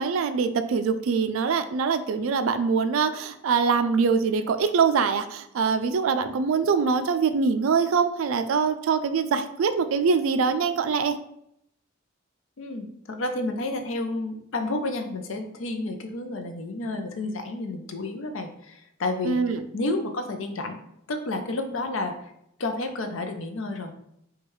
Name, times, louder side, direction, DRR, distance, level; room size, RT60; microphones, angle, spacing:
voice 1, 0.0-11.2 19.2-19.6, right 5 dB, 65° right, 9 dB, 0.3 m, -23 dB
voice 2, 12.6-19.4 19.7-20.8 21.1-22.2 22.6-24.0, left 2 dB, 60° left, 5 dB, 0.5 m, -30 dB
4.4 x 2.3 x 3.1 m, 0.75 s
head